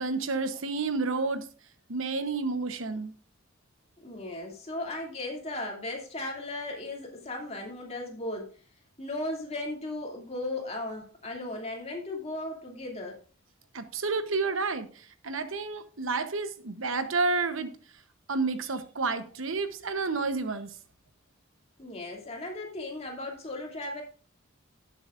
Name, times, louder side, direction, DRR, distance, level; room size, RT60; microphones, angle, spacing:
voice 1, 0.0-1.5 1.9-3.1 13.7-17.7 18.3-20.7, right 3 dB, 70° right, 1.0 m, -30 dB
voice 2, 4.0-8.5 9.0-13.2 21.8-24.0, left 2 dB, 30° left, 2.6 m, -36 dB
18.0 x 7.3 x 2.5 m
head